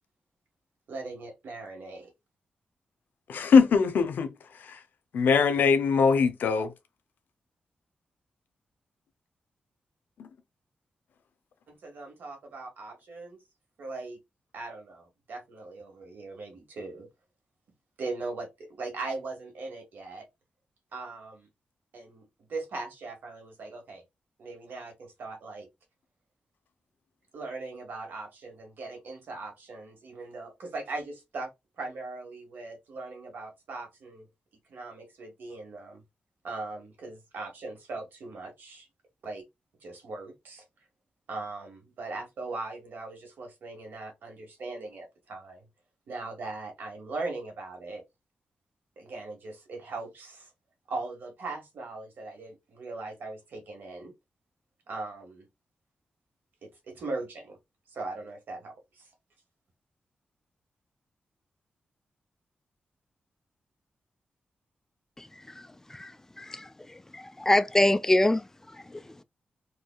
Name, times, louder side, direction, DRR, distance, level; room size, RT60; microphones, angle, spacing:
voice 1, 0.9-2.1 11.7-13.4 13.8-14.2 14.5-17.1 18.0-20.3 20.9-21.5 21.9-24.0 24.4-25.7 27.3-31.5 31.8-34.3 34.7-36.0 36.4-38.9 39.2-39.4 39.8-40.6 41.3-45.6 46.1-48.0 49.0-50.5 50.9-54.1 54.9-55.5 56.6-57.6 57.9-59.1, right 3 dB, 80° right, 1.5 m, -39 dB
voice 2, 3.3-4.3 5.1-6.7, left 5 dB, 90° left, 0.7 m, -21 dB
voice 3, 66.4-66.7 67.1-68.4, left 1 dB, 15° left, 0.3 m, -24 dB
4.7 x 2.6 x 2.3 m
wide cardioid pair, 120°, 3 cm